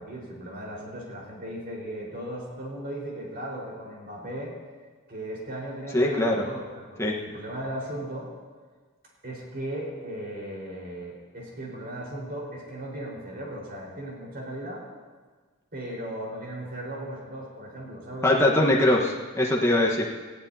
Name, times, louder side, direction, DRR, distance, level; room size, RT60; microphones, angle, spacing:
voice 1, 0.0-4.5 5.1-8.3 9.2-14.9 15.7-18.7, right 1 dB, 50° right, -3 dB, 4.6 m, -37 dB
voice 2, 5.9-6.5 7.0-7.2 18.2-20.0, left 1 dB, 15° left, -2 dB, 1.3 m, -22 dB
19.5 x 15.0 x 2.8 m, 1.4 s
head